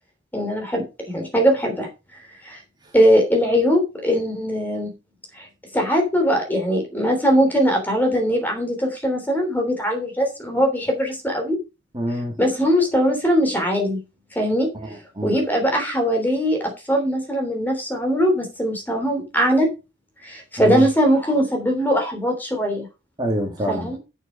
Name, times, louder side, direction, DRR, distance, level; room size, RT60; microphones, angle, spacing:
voice 1, 0.3-1.9 2.4-2.6 2.9-4.9 5.4-5.5 5.7-11.6 12.4-14.0 14.3-14.7 15.2-19.7 20.2-22.9 23.7-24.0, equal, 10° left, 2 dB, 3.2 m, -21 dB
voice 2, 11.9-12.4 14.7-15.4 20.6-20.9 23.2-24.0, right 1 dB, 20° right, 1 dB, 2.1 m, -26 dB
8.7 x 6.9 x 5.2 m, 0.28 s
head